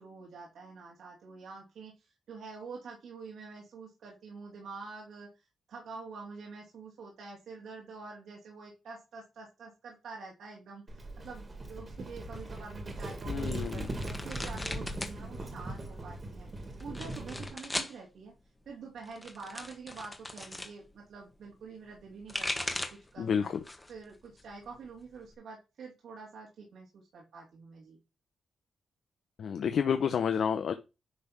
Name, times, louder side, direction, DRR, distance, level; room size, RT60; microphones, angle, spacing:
voice 1, 0.0-18.3 18.6-23.5 23.9-28.0, right 4 dB, 75° right, 3.1 m, -47 dB
Livestock farm animals working animals, 10.9-17.5, right 1 dB, 30° right, 2.1 m, -40 dB
voice 2, 13.3-13.9 23.2-23.6 29.4-30.8, left 7 dB, 65° left, 0.8 m, -29 dB
sound 1, 13.4-15.2 15.5-16.1 16.8-18.0 19.0-20.7 22.0-23.1 23.5-24.0 24.4-25.3, left 1 dB, 10° left, 1.3 m, -38 dB
10.0 x 3.5 x 6.0 m
cardioid pair, 110°, 0 cm